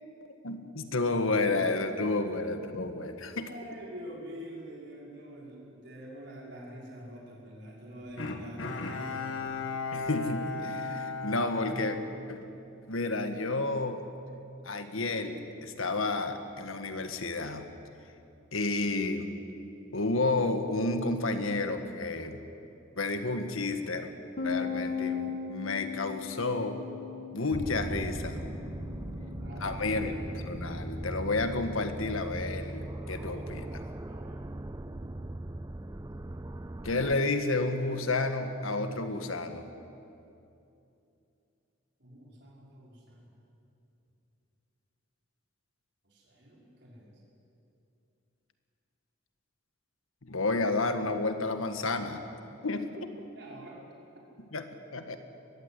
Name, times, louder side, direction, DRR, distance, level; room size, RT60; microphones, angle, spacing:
voice 1, 0.4-3.5 9.9-12.0 12.3-12.4 12.9-14.0 14.6-17.7 18.5-19.3 19.9-22.4 23.0-24.1 24.4-26.8 27.3-28.4 29.6-33.8 36.8-39.7 50.2-52.2 52.6-52.9 54.5-55.2, left 2 dB, 90° left, 7 dB, 1.7 m, -31 dB
voice 2, 3.5-9.6 29.1-30.3 34.1-34.4 42.0-43.3 46.0-47.2 53.0-53.1 53.3-53.8, equal, 55° right, -3 dB, 5.7 m, -46 dB
Bowed string instrument, 8.2-12.7 13.1-13.2, left 3 dB, 70° left, 1.9 m, -36 dB
Bass guitar, 24.4-30.6, left 6 dB, 45° left, 1.7 m, -38 dB
sound 1, 27.5-37.2, right 1 dB, 15° right, 0.5 m, -39 dB
22.0 x 15.5 x 9.9 m, 2.7 s
head